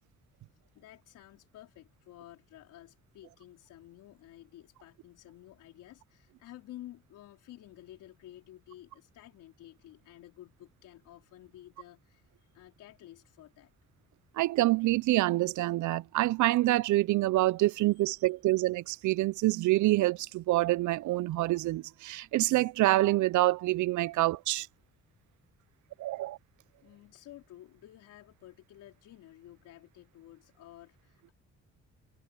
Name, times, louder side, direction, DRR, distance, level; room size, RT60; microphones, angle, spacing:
voice 1, 0.5-13.7 17.7-18.3 24.1-24.2 26.1-26.2 26.8-31.3, left 14 dB, 85° left, 4.5 m, -52 dB
voice 2, 14.4-24.7 26.0-26.4, right 17 dB, 75° right, 0.6 m, -26 dB
cardioid pair, 90°, 30 cm